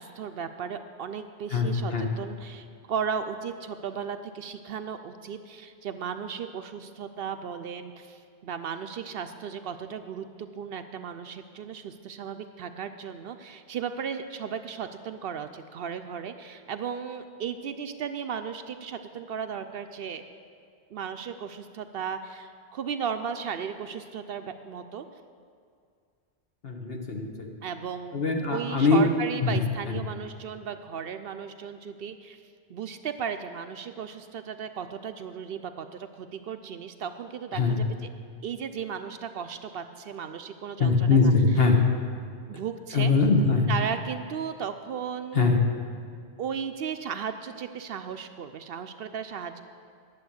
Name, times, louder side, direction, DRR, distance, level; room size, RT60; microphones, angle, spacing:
voice 1, 0.0-20.2 20.9-25.1 27.6-28.2 28.5-32.4 32.7-37.9 38.4-41.3 42.5-43.1 43.7-45.6 46.4-49.6, right 7 dB, 65° right, 9 dB, 0.7 m, -35 dB
voice 2, 1.5-2.1 26.6-27.3 28.1-29.1 29.4-29.6 29.9-30.0 37.5-37.8 40.8-41.8 42.9-43.7 45.3-45.6, left 4 dB, 60° left, 2 dB, 1.4 m, -22 dB
11.0 x 7.3 x 7.9 m, 2.2 s
omnidirectional pair, 1.1 m